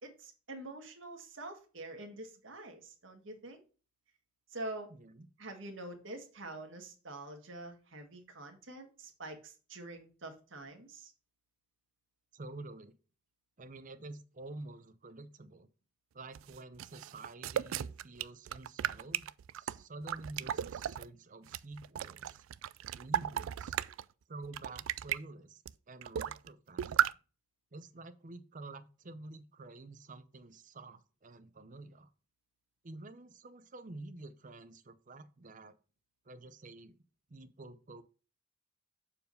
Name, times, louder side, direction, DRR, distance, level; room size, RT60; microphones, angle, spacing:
voice 1, 0.0-3.6 4.5-4.9 5.4-11.1, right 2 dB, 75° right, 1.7 m, -46 dB
voice 2, 4.9-5.3 12.3-12.9 13.6-15.7 16.1-19.3 19.6-22.4 22.9-23.8 24.3-27.1 27.7-32.1 32.8-35.8 36.3-37.0 37.3-38.0, right 2 dB, 40° right, 0.7 m, -49 dB
sound 1, 16.3-21.1 21.5-24.0 24.4-25.2 25.7-25.8 26.0-26.5 26.8-27.1, right 10 dB, 90° right, 0.3 m, -35 dB
7.1 x 4.7 x 5.4 m
head